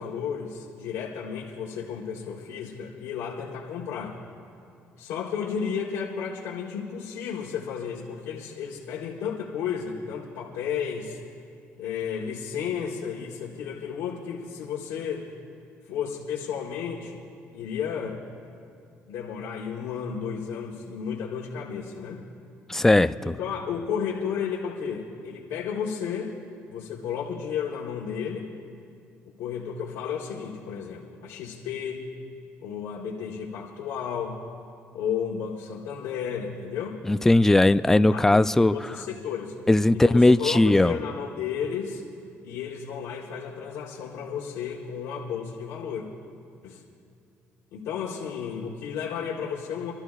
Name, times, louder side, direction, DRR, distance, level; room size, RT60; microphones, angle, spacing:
voice 1, 0.0-4.2 5.0-11.2 11.8-15.3 15.9-17.2 17.5-18.2 19.1-22.2 23.2-26.3 26.7-28.5 29.4-32.1 32.6-34.4 34.9-37.0 37.4-37.6 38.1-39.6 39.9-42.0 42.4-46.1 46.6-46.8 47.7-49.9, left 7 dB, 85° left, -4 dB, 1.1 m, -33 dB
voice 2, 22.7-23.4 37.0-38.7 39.7-41.0, left 2 dB, 10° left, 13 dB, 0.3 m, -19 dB
26.0 x 13.0 x 2.4 m, 2.5 s
cardioid pair, 90°, 5 cm